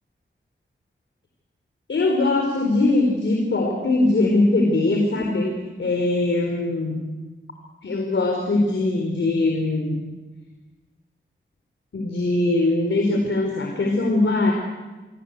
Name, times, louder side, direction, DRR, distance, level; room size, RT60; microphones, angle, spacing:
voice 1, 1.9-7.0 7.8-10.0 11.9-14.5, left 2 dB, 75° left, 2 dB, 4.3 m, -21 dB
28.0 x 23.0 x 8.2 m, 1.2 s
wide cardioid pair, 85°, 20 cm